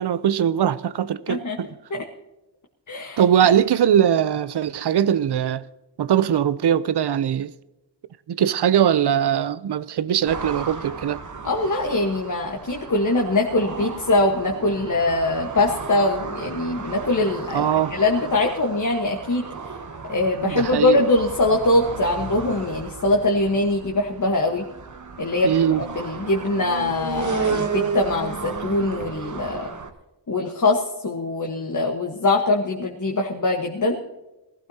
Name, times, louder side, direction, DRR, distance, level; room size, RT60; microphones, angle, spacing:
voice 1, 0.0-1.7 3.2-5.6 6.0-7.5 8.3-11.2 17.5-17.9 20.4-21.0 25.4-25.8, right 9 dB, 60° right, 0.6 m, -21 dB
voice 2, 2.9-3.5 11.4-19.5 20.1-24.6 25.2-29.7 30.3-34.0, left 2 dB, 40° left, 1.3 m, -22 dB
sound 1, 10.3-29.9, right 5 dB, 40° right, 1.1 m, -33 dB
19.5 x 15.0 x 2.8 m
wide cardioid pair, 130°, 45 cm